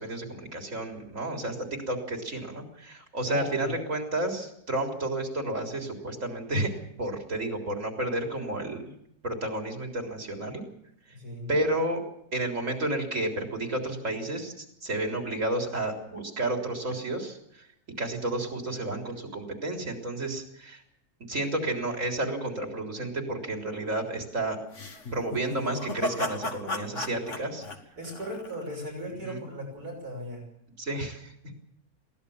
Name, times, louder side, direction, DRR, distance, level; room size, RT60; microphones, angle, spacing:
voice 1, 0.0-1.6 1.9-6.7 7.0-8.8 9.2-10.6 11.5-12.0 12.3-17.7 18.0-20.8 21.3-24.6 25.1-27.7 29.2-29.4 30.8-31.3, right 2 dB, 55° right, 3 dB, 4.1 m, -31 dB
voice 2, 3.2-3.7 11.1-11.5 28.0-30.5, equal, 80° right, 1 dB, 6.7 m, -37 dB
sound 1, 24.7-28.9, left 1 dB, 50° left, 2.4 m, -34 dB
22.5 x 17.0 x 7.2 m, 0.73 s
omnidirectional pair, 1.6 m